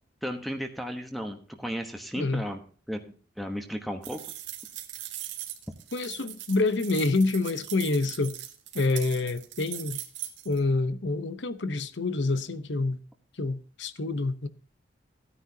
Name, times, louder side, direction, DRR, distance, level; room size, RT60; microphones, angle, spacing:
voice 1, 0.2-2.6 2.9-3.0 3.4-4.2, equal, ahead, 1.1 m, -34 dB
voice 2, 2.2-2.5 5.9-8.4 8.7-10.0 10.4-13.0 13.4-14.5, left 3 dB, 75° left, 0.9 m, -27 dB
sound 1, 4.0-10.6, right 13 dB, 80° right, 1.7 m, -40 dB
15.5 x 9.8 x 2.8 m
head